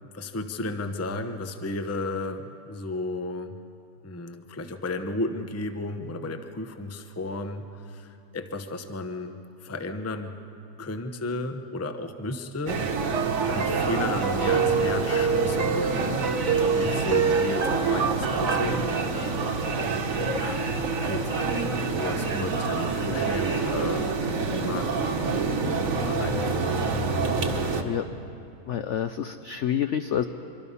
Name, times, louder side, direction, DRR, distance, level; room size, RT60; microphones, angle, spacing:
voice 1, 0.0-3.6 4.0-9.3 9.6-10.4 10.8-13.2 13.5-16.3 16.6-19.1 20.3-20.6 21.0-26.7, left 2 dB, 15° left, 7 dB, 0.6 m, -34 dB
sound 1, 12.7-27.8, right 4 dB, 50° right, 1.6 m, -27 dB
sound 2, 13.0-18.8, right 5 dB, 70° right, 2.1 m, -27 dB
voice 2, 28.7-30.2, left 9 dB, 65° left, 9 dB, 0.7 m, -28 dB
24.5 x 24.5 x 5.6 m, 2.7 s
omnidirectional pair, 1.8 m